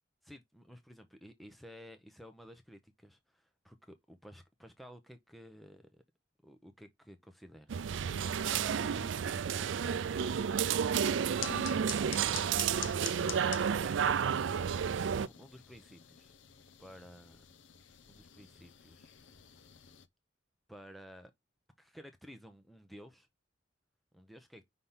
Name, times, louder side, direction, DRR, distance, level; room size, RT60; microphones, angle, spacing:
voice 1, 0.2-6.0 6.4-7.7 8.2-10.3 11.2-12.2 14.9-16.0 16.8-17.5 18.0-19.1 20.7-21.3 21.8-23.3 24.1-24.6, equal, ahead, 0.7 m, -53 dB
sound 1, 7.7-15.3, right 7 dB, 90° right, 0.4 m, -31 dB
sound 2, 11.4-20.1, left 10 dB, 90° left, 0.7 m, -47 dB
5.6 x 3.4 x 5.6 m
head